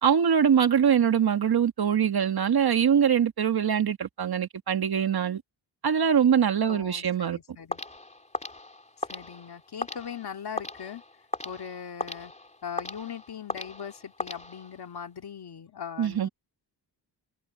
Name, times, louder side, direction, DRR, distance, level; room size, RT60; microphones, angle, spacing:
voice 1, 0.0-5.4 5.8-7.4 16.0-16.3, right 8 dB, 60° right, 1.6 m, -23 dB
voice 2, 6.6-7.8 9.0-11.0 11.4-12.3 12.6-16.3, left 7 dB, 65° left, 2.3 m, -40 dB
sound 1, 7.7-15.0, left 2 dB, 15° left, 3.8 m, -38 dB
wide cardioid pair, 130°, 41 cm